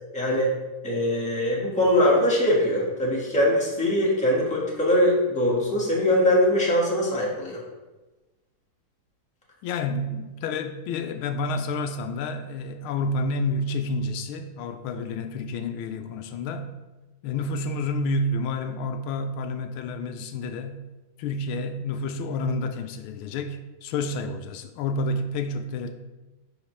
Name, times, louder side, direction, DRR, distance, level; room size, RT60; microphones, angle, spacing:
voice 1, 0.1-0.5 0.8-7.6, left 1 dB, 5° left, -5 dB, 1.4 m, -22 dB
voice 2, 9.6-16.7 17.2-20.8 21.2-25.9, left 2 dB, 85° left, 8 dB, 1.4 m, -29 dB
10.5 x 4.4 x 3.3 m, 1.1 s
omnidirectional pair, 2.3 m